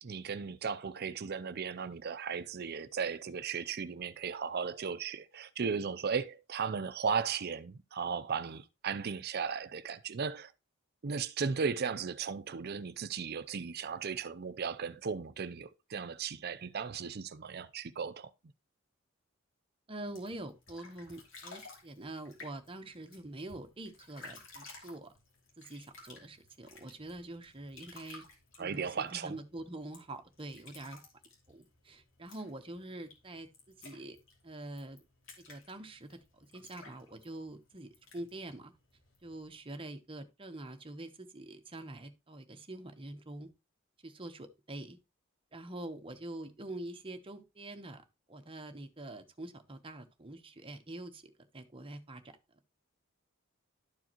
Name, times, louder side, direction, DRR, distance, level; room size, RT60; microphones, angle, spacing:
voice 1, 0.0-10.5 11.0-18.3 28.6-29.3, right 6 dB, 50° right, 0.5 m, -36 dB
voice 2, 19.9-25.1 25.6-28.3 28.6-31.0 31.5-34.2 34.4-35.0 35.4-38.7 39.2-43.5 44.0-45.0 45.5-52.4, right 1 dB, 25° right, 1.0 m, -45 dB
sound 1, 20.0-39.6, left 3 dB, 70° left, 2.7 m, -56 dB
12.0 x 4.7 x 3.0 m
head